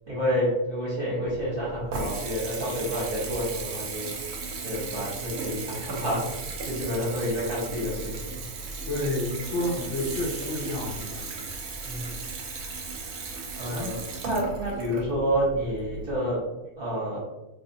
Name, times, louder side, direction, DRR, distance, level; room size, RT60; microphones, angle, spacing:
voice 1, 0.1-4.3 4.6-6.2 6.7-8.4 11.8-12.1 13.6-16.4 16.8-17.2, equal, 40° right, -6 dB, 0.9 m, -29 dB
Water tap faucet / Bathtub (filling or washing) / Trickle dribble, 1.3-16.1, right 4 dB, 70° right, 0.9 m, -36 dB
voice 2, 8.9-11.3 13.6-14.0 15.0-15.2, left 1 dB, 65° left, -5 dB, 0.7 m, -30 dB
2.9 x 2.4 x 2.7 m, 0.99 s
omnidirectional pair, 1.7 m